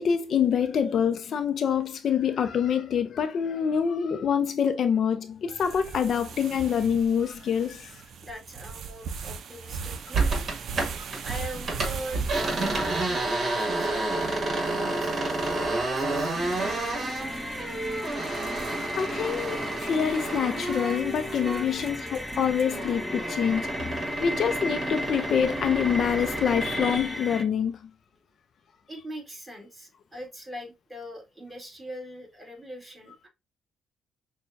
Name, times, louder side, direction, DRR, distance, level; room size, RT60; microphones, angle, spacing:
voice 1, 0.0-8.0 18.2-18.3 18.9-27.9, left 7 dB, 60° left, 0.5 m, -26 dB
sound 1, 5.6-22.9, right 6 dB, 65° right, 0.5 m, -41 dB
voice 2, 8.2-10.4 11.2-16.4 19.3-19.4 21.8-22.1 28.9-33.3, equal, 15° right, 2.0 m, -42 dB
sound 2, 10.1-11.2 11.5-21.9 22.2-27.1, right 2 dB, 45° right, 1.5 m, -30 dB
sound 3, 16.3-27.4, left 1 dB, 10° left, 0.6 m, -35 dB
6.1 x 2.2 x 2.5 m
cardioid pair, 90°, 0 cm